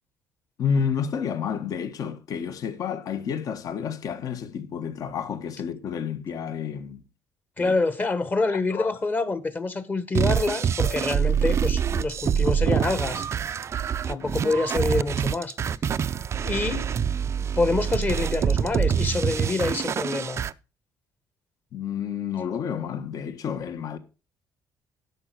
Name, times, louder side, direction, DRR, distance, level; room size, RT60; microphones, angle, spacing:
voice 1, 0.6-7.0 7.6-7.7 8.5-8.9 21.7-24.0, left 7 dB, 55° left, 1.4 m, -30 dB
voice 2, 7.6-13.3 14.1-15.6 16.4-16.8 17.6-20.4, left 3 dB, 25° left, 1.2 m, -26 dB
sound 1, 10.1-20.5, right 7 dB, 40° right, 0.5 m, -25 dB
11.0 x 7.0 x 6.1 m
cardioid pair, 120°, 7 cm